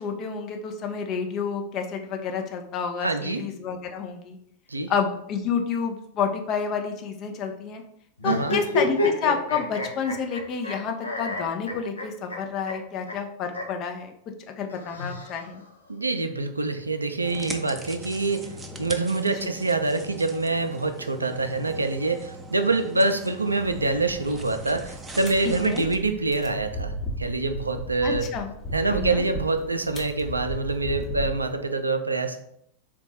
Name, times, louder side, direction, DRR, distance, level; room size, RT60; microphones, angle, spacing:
voice 1, 0.0-4.4 4.9-7.8 8.2-14.1 14.5-15.6 19.4-19.5 25.4-25.9 28.0-28.5 28.9-29.2, left 6 dB, 35° left, 4 dB, 0.6 m, -29 dB
voice 2, 3.0-3.4 4.7-4.9 8.2-8.5 15.9-18.5 18.8-26.9 27.2-28.3 28.7-32.4, right 3 dB, 80° right, 8 dB, 0.4 m, -25 dB
sound 1, 8.2-10.7 11.0-12.4 12.7-12.8 13.1-13.2 13.5-13.6 14.7-15.7, left 1 dB, 80° left, 0.6 m, -28 dB
sound 2, 17.2-26.0, right 1 dB, 15° right, 0.5 m, -41 dB
sound 3, 23.6-31.5, right 1 dB, 20° left, 0.9 m, -36 dB
3.9 x 2.2 x 4.1 m, 0.72 s
figure-of-eight pair, 90°, 0 cm